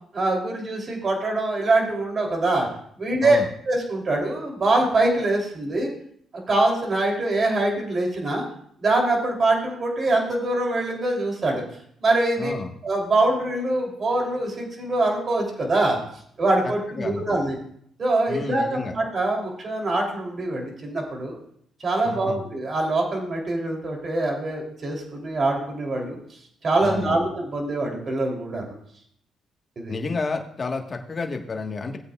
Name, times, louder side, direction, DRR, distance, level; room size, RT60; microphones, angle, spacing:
voice 1, 0.1-2.7 3.0-3.4 3.7-5.9 6.3-8.5 8.8-11.6 12.0-12.5 12.8-16.0 16.4-17.6 18.0-21.4 21.8-26.2 26.6-28.6 29.8-30.0, right 2 dB, 40° right, 0 dB, 3.2 m, -24 dB
voice 2, 12.4-12.7 16.9-17.4 18.3-18.9 22.0-22.4 26.8-27.2 29.9-32.0, left 4 dB, 35° left, 3 dB, 1.5 m, -30 dB
17.5 x 8.3 x 2.4 m, 0.66 s
cardioid pair, 90°, 0 cm